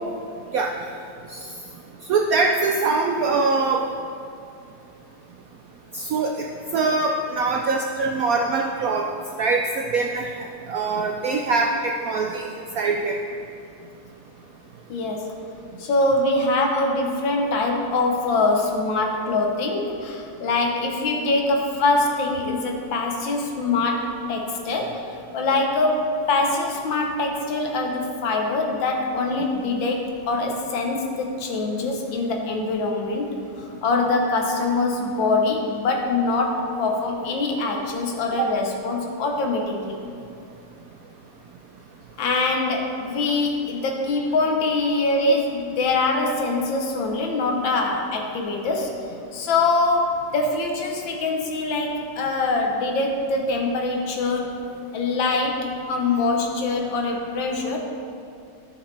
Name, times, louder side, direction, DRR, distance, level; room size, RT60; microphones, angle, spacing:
voice 1, 2.1-3.8 5.9-6.5 6.7-9.1 9.4-10.3 10.7-12.5 12.7-13.2 45.2-45.3, right 3 dB, 75° right, 2 dB, 0.8 m, -23 dB
voice 2, 14.9-15.4 15.8-25.0 25.3-33.3 33.6-40.0 42.2-48.9 49.3-54.5 54.9-57.8, left 3 dB, 80° left, 2 dB, 1.8 m, -24 dB
13.0 x 6.3 x 3.3 m, 2.5 s
omnidirectional pair, 2.0 m